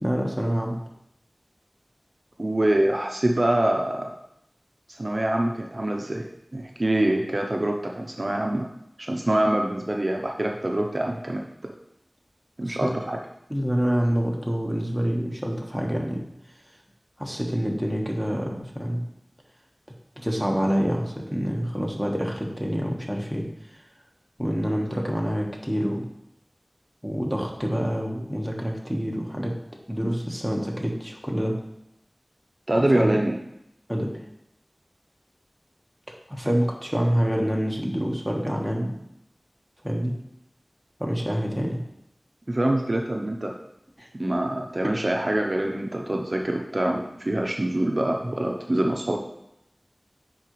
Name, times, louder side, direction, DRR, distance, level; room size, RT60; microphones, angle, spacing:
voice 1, 0.0-0.8 12.7-13.0 13.5-16.2 17.2-19.0 20.2-23.4 24.4-26.0 27.0-29.5 29.9-31.5 32.9-33.2 33.9-34.1 36.3-39.0 39.8-40.2 41.0-41.8 44.0-44.1, equal, 5° right, -1 dB, 1.2 m, -26 dB
voice 2, 2.4-4.1 4.9-6.3 6.5-8.7 9.0-11.4 12.6-13.2 32.7-33.4 42.5-43.5 44.2-49.2, right 1 dB, 50° right, 1 dB, 0.6 m, -25 dB
9.7 x 3.9 x 3.1 m, 0.81 s
wide cardioid pair, 50°, 0 cm